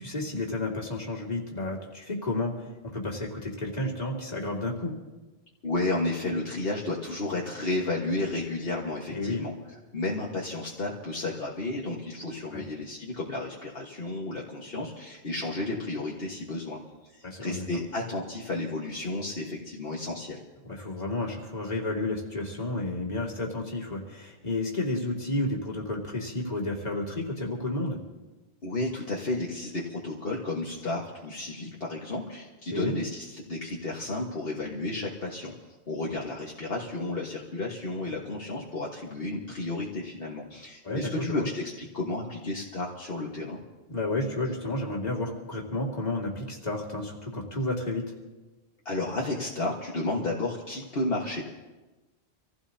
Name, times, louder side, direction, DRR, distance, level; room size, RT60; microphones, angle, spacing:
voice 1, 0.0-4.9 9.1-9.5 12.5-12.6 17.2-17.7 20.6-28.0 32.7-32.9 40.8-41.5 43.9-48.1, left 2 dB, 40° left, -2 dB, 2.6 m, -31 dB
voice 2, 5.6-9.5 9.9-16.8 17.1-20.4 28.6-35.6 35.9-43.6 48.9-51.4, left 2 dB, 60° left, -3 dB, 1.8 m, -32 dB
26.5 x 16.0 x 2.8 m, 1.2 s
omnidirectional pair, 1.1 m